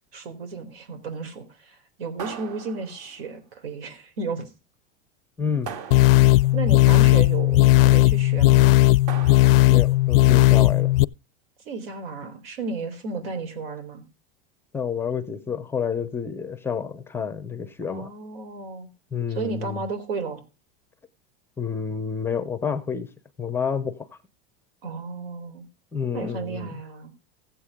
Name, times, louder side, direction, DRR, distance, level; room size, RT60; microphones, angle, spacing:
voice 1, 0.1-4.5 6.0-6.1 6.5-8.7 11.7-14.0 17.9-18.9 19.3-20.4 24.8-25.6 26.1-27.1, right 4 dB, 90° right, 4.0 m, -33 dB
sound 1, 2.2-3.3 5.6-6.6 9.1-9.9, right 7 dB, 45° right, 1.6 m, -39 dB
voice 2, 5.4-5.7 9.7-10.9 14.7-18.1 19.1-19.9 21.6-23.1 23.4-24.0 25.9-26.7, left 6 dB, 10° left, 0.5 m, -29 dB
sound 2, 5.9-11.0, left 17 dB, 75° left, 0.5 m, -16 dB
15.0 x 8.3 x 3.6 m
supercardioid pair, 165°, 29 cm